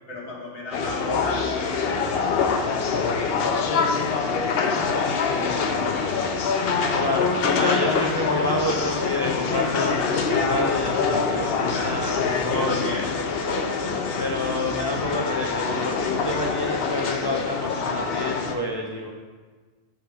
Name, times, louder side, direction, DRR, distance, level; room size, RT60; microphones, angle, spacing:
voice 1, 0.1-4.6 5.2-6.5 11.7-12.0 12.5-13.6, left 1 dB, 80° left, -4 dB, 1.6 m, -36 dB
sound 1, 0.7-18.5, left 5 dB, 65° left, 0.8 m, -25 dB
voice 2, 7.0-12.8 14.2-19.1, left 1 dB, 40° left, 0 dB, 0.3 m, -28 dB
9.4 x 3.3 x 3.4 m, 1.4 s
omnidirectional pair, 1.1 m